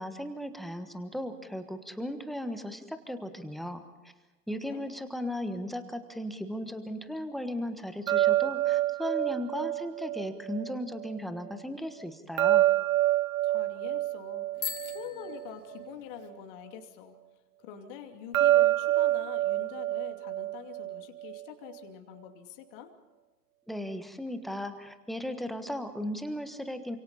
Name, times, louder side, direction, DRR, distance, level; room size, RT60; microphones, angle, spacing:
voice 1, 0.0-3.8 4.5-12.6 23.7-27.0, left 1 dB, ahead, 8 dB, 1.3 m, -36 dB
sound 1, 8.1-11.1 12.4-15.9 18.3-21.4, right 14 dB, 60° right, 0.7 m, -27 dB
voice 2, 13.4-14.5 14.9-17.2 17.6-22.9, left 8 dB, 35° left, 4 dB, 2.7 m, -45 dB
Bicycle bell, 14.5-16.3, left 6 dB, 65° left, 4.1 m, -40 dB
29.0 x 26.5 x 4.2 m, 1.2 s
figure-of-eight pair, 125°, 47 cm